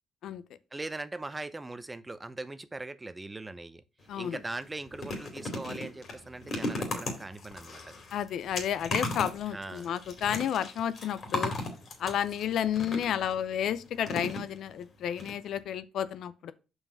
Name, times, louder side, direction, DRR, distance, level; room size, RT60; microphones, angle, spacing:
voice 1, 0.7-3.8 4.2-7.9 9.5-9.9, right 2 dB, 20° right, 0.7 m, -40 dB
sound 1, 4.0-4.2 4.5-13.3 14.0-14.8 15.2-15.3 15.6-15.7, left 2 dB, 50° left, 2.4 m, -36 dB
voice 2, 4.1-4.4 8.1-11.5 12.0-16.5, left 9 dB, 75° left, 0.5 m, -31 dB
5.4 x 4.8 x 5.6 m
cardioid pair, 85°, 0 cm